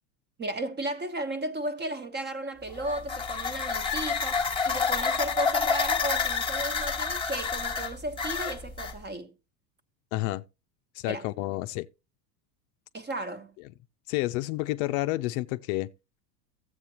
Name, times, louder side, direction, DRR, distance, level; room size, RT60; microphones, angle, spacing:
voice 1, 0.4-9.3 11.1-11.3 12.9-13.5, right 1 dB, 20° right, 1.1 m, -34 dB
sound 1, 2.7-9.0, left 5 dB, 10° left, 1.3 m, -29 dB
voice 2, 10.1-10.4 11.0-11.9 14.1-15.9, left 18 dB, 60° left, 0.6 m, -30 dB
13.0 x 7.9 x 2.9 m
supercardioid pair, 110°, 50 cm